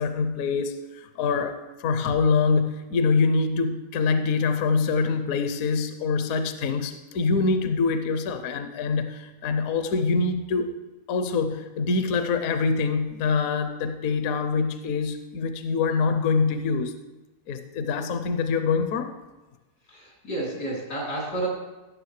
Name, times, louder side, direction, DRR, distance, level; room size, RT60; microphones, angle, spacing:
voice 1, 0.0-10.7 11.1-16.9 17.5-19.2, left 4 dB, 70° left, 8 dB, 1.0 m, -25 dB
voice 2, 19.9-21.5, right 2 dB, 90° left, -4 dB, 3.9 m, -31 dB
16.0 x 6.8 x 3.2 m, 1.1 s
omnidirectional pair, 1.7 m